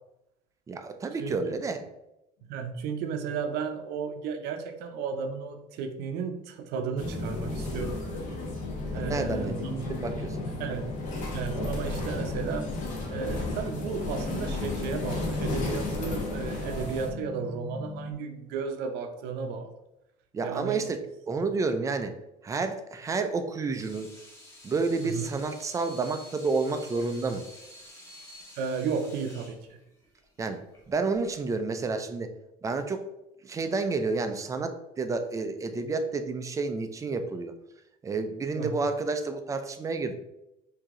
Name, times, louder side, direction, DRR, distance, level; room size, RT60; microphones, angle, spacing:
voice 1, 0.7-1.8 8.9-10.8 20.3-21.0 21.3-22.1 22.4-24.1 24.6-27.4 30.4-30.6 30.9-32.3 32.6-33.0 33.4-37.5 38.0-40.1, right 4 dB, 20° right, 7 dB, 0.4 m, -30 dB
voice 2, 1.2-1.5 2.5-8.0 8.9-9.9 10.6-10.9 11.3-12.7 13.1-19.7 20.4-20.8 25.0-25.3 28.5-29.8 38.5-38.8, right 6 dB, 75° right, 6 dB, 0.7 m, -34 dB
sound 1, 6.4-6.5 6.9-18.1, left 5 dB, 90° left, 0.9 m, -41 dB
sound 2, 7.0-17.1, left 2 dB, 50° left, 1.2 m, -33 dB
Water tap faucet / Sink (filling or washing), 23.5-31.6, left 1 dB, 15° left, 1.2 m, -50 dB
4.8 x 2.8 x 3.7 m, 0.88 s
cardioid pair, 135°, 17 cm